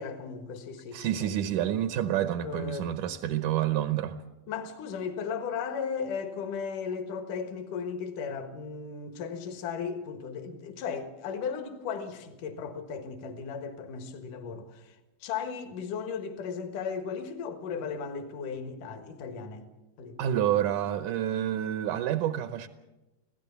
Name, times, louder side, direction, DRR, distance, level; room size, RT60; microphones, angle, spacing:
voice 1, 0.0-1.4 2.4-3.1 4.5-15.0 15.2-19.7 20.0-20.5, left 6 dB, 65° left, 2.9 m, -36 dB
voice 2, 0.9-4.2 20.2-22.7, right 11 dB, 70° right, 2.1 m, -28 dB
27.0 x 16.5 x 6.9 m
omnidirectional pair, 4.2 m